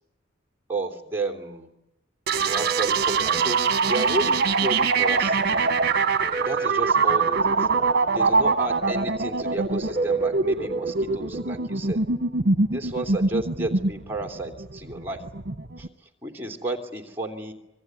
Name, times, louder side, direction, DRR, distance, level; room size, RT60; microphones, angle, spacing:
voice 1, 0.7-1.7 2.3-5.6 6.4-7.7 8.1-12.0 12.7-15.2 15.8-15.9 16.2-17.5, right 2 dB, 10° right, 4 dB, 3.0 m, -32 dB
sound 1, 2.3-15.9, right 4 dB, 55° right, 1.3 m, -23 dB
25.5 x 22.5 x 9.5 m, 0.92 s
head